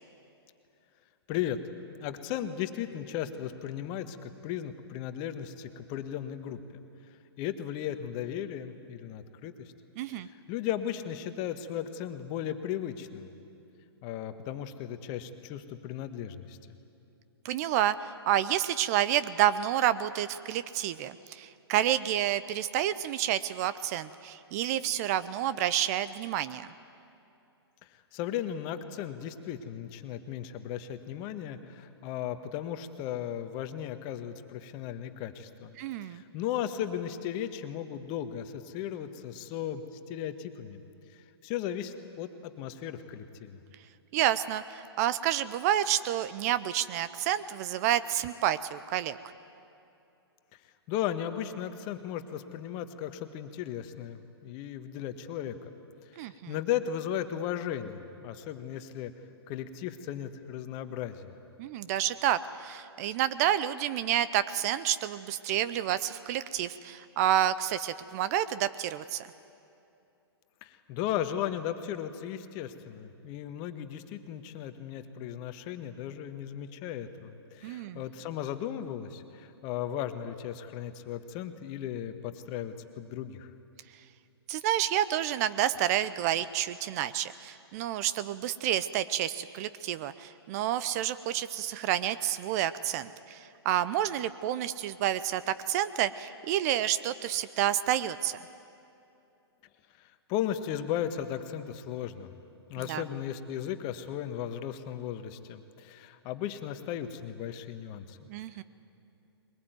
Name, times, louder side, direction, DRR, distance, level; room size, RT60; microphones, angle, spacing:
voice 1, 1.3-1.6 2.0-6.8 7.4-9.5 10.1-13.3 14.0-16.6 28.1-35.7 36.0-40.8 41.4-43.6 50.9-55.7 56.2-59.1 59.5-61.3 70.6-83.5 100.0-102.3 102.7-108.3, left 10 dB, 35° left, 9 dB, 1.3 m, -36 dB
voice 2, 10.0-10.3 17.4-18.0 18.3-26.7 35.8-36.2 44.1-49.2 56.2-56.5 61.6-69.3 77.6-78.0 84.5-98.4 102.9-103.0 108.3-108.6, right 11 dB, 35° right, 15 dB, 0.6 m, -29 dB
22.0 x 20.0 x 9.3 m, 2.7 s
figure-of-eight pair, 120°, 14 cm